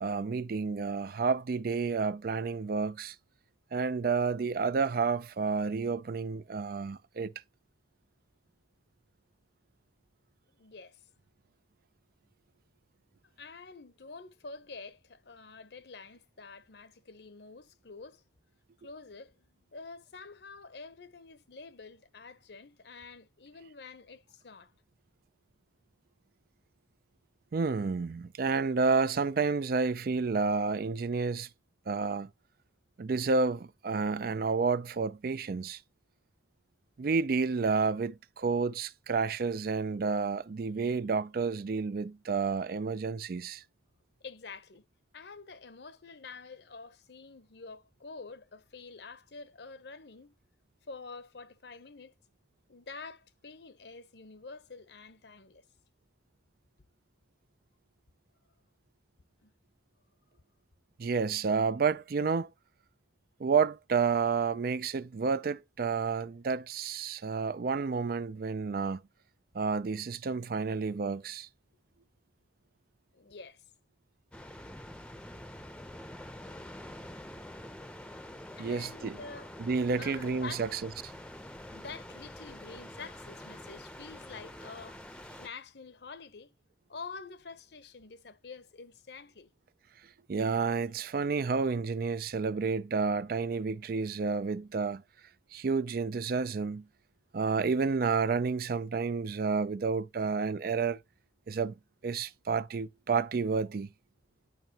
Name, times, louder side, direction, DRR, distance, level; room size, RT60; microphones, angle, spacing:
voice 1, 0.0-3.1 3.7-7.3 27.5-31.5 31.9-32.3 33.0-35.8 37.0-43.6 61.0-62.5 63.4-69.0 69.5-71.5 78.6-79.2 79.6-80.8 90.3-95.0 95.5-96.9 97.3-101.0 101.5-101.7 102.0-103.9, right 4 dB, 55° right, 0.4 m, -30 dB
voice 2, 10.5-11.0 13.4-18.2 18.8-24.7 44.2-44.8 45.1-50.3 50.9-52.1 52.7-55.6 59.4-59.5 73.1-73.6 78.5-79.5 79.9-80.7 81.7-85.0 85.4-86.5 86.9-89.5, left 4 dB, 70° left, 0.9 m, -47 dB
sound 1, 74.3-85.5, left 1 dB, 5° left, 0.7 m, -46 dB
11.0 x 5.5 x 2.9 m
head